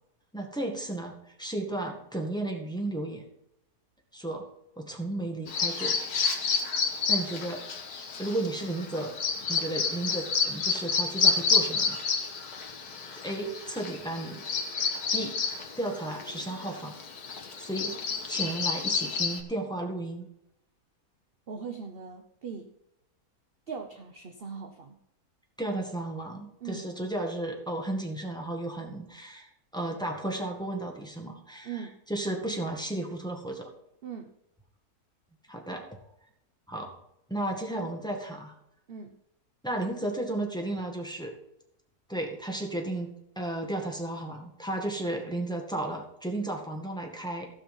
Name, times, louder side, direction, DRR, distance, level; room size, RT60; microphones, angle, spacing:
voice 1, 0.3-3.3 4.1-4.4 4.8-5.9 7.1-7.6 8.2-9.1 9.5-12.0 13.1-14.4 15.1-15.3 15.8-17.0 17.6-20.3 25.6-29.5 29.7-31.7 32.1-33.7 35.5-35.8 36.7-36.9 37.3-38.5 39.6-41.3 42.1-43.1 43.3-47.5, right 1 dB, 5° left, 1 dB, 1.8 m, -33 dB
Bird vocalization bird call bird song, 5.5-19.4, left 5 dB, 75° left, 1.8 m, -30 dB
voice 2, 21.5-22.7 23.7-25.0 26.6-26.9 31.6-32.0 34.0-34.3 38.9-39.1, right 6 dB, 45° right, 6 dB, 0.9 m, -40 dB
16.0 x 5.7 x 5.5 m, 0.81 s
omnidirectional pair, 1.7 m